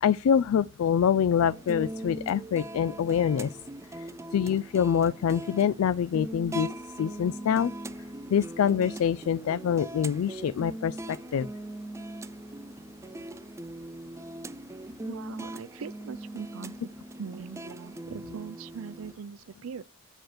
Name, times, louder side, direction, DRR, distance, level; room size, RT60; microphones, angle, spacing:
voice 1, 0.0-3.5 4.3-6.7 7.0-7.7 8.3-11.5, left 8 dB, 85° left, 0.3 m, -25 dB
sound 1, 1.3-19.1, right 1 dB, 15° right, 0.3 m, -40 dB
voice 2, 15.0-16.9 17.2-19.9, right 6 dB, 85° right, 0.4 m, -41 dB
7.9 x 4.3 x 6.5 m
head